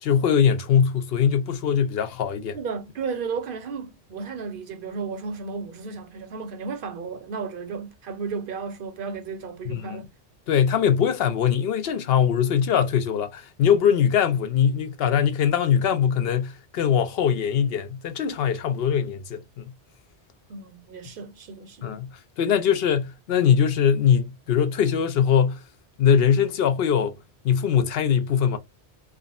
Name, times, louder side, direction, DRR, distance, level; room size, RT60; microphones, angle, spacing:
voice 1, 0.0-2.6 9.7-10.0 10.5-19.7 21.8-25.6 26.0-27.1 27.4-28.6, left 8 dB, 65° left, 0.8 m, -22 dB
voice 2, 2.5-10.1 20.5-22.0, right 5 dB, 60° right, 0.8 m, -34 dB
3.5 x 2.0 x 2.3 m
omnidirectional pair, 1.1 m